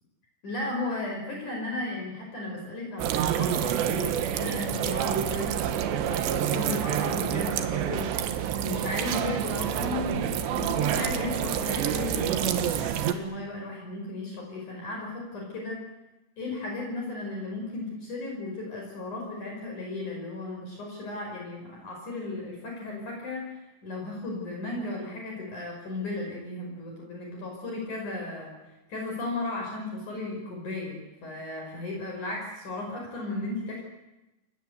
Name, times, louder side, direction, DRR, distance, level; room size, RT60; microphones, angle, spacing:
voice 1, 0.4-5.5 5.8-8.1 8.6-15.8 16.4-28.5 28.9-33.8, left 2 dB, 40° left, 0 dB, 6.7 m, -35 dB
sound 1, 3.0-13.1, right 9 dB, 75° right, 3.6 m, -28 dB
29.0 x 23.0 x 8.2 m, 1.0 s
omnidirectional pair, 5.3 m